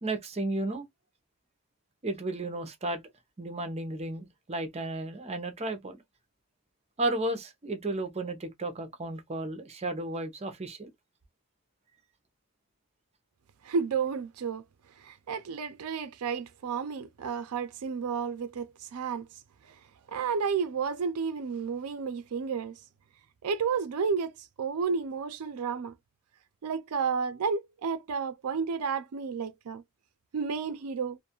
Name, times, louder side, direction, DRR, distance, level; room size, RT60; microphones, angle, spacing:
voice 1, 0.0-0.9 2.0-3.0 3.4-6.0 7.0-10.9, right 2 dB, 30° right, 0.6 m, -33 dB
voice 2, 13.6-14.6 15.0-19.3 19.7-19.8 20.1-22.8 23.4-25.9 26.6-29.8 30.3-31.2, right 5 dB, 90° right, 0.4 m, -31 dB
2.5 x 2.3 x 2.8 m
head